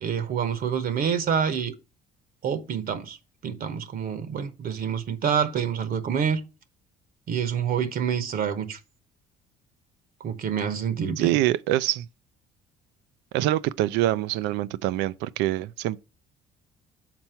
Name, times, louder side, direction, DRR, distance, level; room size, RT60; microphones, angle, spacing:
voice 1, 0.0-1.7 2.4-3.2 3.4-6.4 7.3-8.8 10.2-11.4, right 7 dB, 55° right, 1.0 m, -27 dB
voice 2, 11.2-12.1 13.3-16.0, right 15 dB, 80° right, 0.5 m, -25 dB
6.0 x 4.4 x 5.7 m
supercardioid pair, 75°, 18 cm